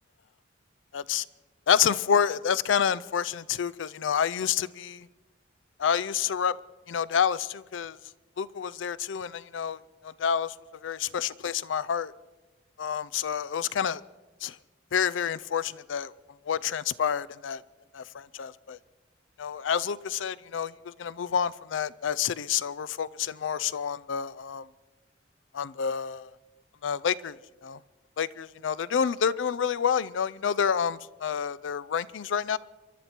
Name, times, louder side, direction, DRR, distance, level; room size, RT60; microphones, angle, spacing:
voice 1, 0.9-1.2 1.7-5.1 5.8-6.5 6.9-8.0 8.4-10.5 10.8-12.1 12.8-14.0 14.4-14.6 14.9-16.1 16.5-17.6 17.9-18.8 19.4-24.7 25.5-26.3 26.8-27.4 27.6-27.8 28.2-32.6, left 7 dB, 85° left, 0.4 m, -28 dB
27.0 x 12.0 x 4.4 m
head